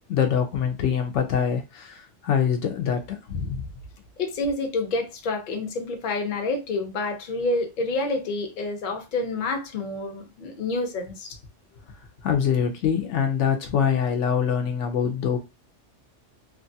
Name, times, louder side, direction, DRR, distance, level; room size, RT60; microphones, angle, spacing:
voice 1, 0.1-3.6 12.2-15.4, left 7 dB, 80° left, 0.9 m, -24 dB
voice 2, 4.2-11.4, left 2 dB, 50° left, 0.8 m, -28 dB
2.9 x 2.3 x 2.6 m
omnidirectional pair, 1.2 m